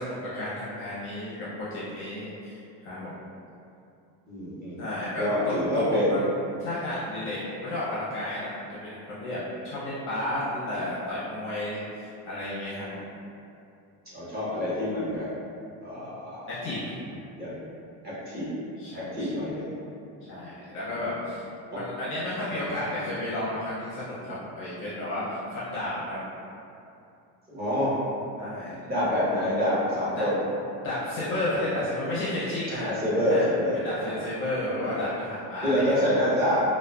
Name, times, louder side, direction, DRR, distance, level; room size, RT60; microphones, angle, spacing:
voice 1, 0.0-2.6 2.8-3.2 4.8-5.3 5.7-6.2 6.6-8.5 8.8-9.4 9.6-13.0 16.5-16.9 18.8-19.3 20.3-21.4 21.7-26.2 28.4-28.8 30.2-30.3 30.8-32.9 33.3-33.5 33.8-36.1, left 1 dB, 30° left, -9 dB, 0.5 m, -32 dB
voice 2, 4.3-4.8 5.2-6.2 14.1-15.3 15.8-16.5 17.4-17.6 18.0-18.5 19.0-19.7 21.7-21.8 27.5-28.0 28.9-30.4 32.8-34.2 34.6-35.0 35.6-36.6, equal, 25° right, -11 dB, 0.8 m, -27 dB
3.7 x 2.1 x 2.2 m, 2.6 s
cardioid pair, 170°, 41 cm